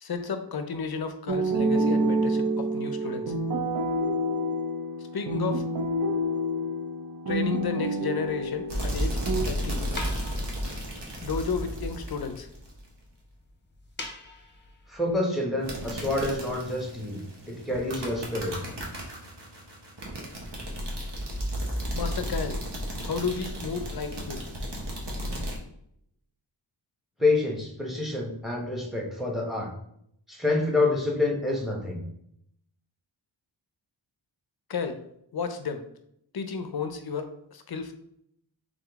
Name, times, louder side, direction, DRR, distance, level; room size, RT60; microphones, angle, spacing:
voice 1, 0.0-3.3 5.1-5.6 7.3-9.2 9.4-9.8 11.2-12.5 21.9-22.6 23.0-24.4 34.7-35.0 35.3-35.8 36.3-37.9, left 5 dB, 55° left, 8 dB, 0.5 m, -32 dB
sound 1, 1.3-9.4, right 1 dB, 45° right, 0.6 m, -28 dB
sound 2, 8.2-15.2, left 2 dB, 25° left, 0.8 m, -46 dB
sound 3, 8.7-12.9 15.6-25.6, equal, 65° right, 1.2 m, -33 dB
voice 2, 14.9-17.2 17.5-18.6 27.2-29.7 30.3-32.0, left 2 dB, ahead, 0 dB, 1.0 m, -27 dB
3.7 x 3.7 x 3.5 m, 0.73 s
wide cardioid pair, 100°, 46 cm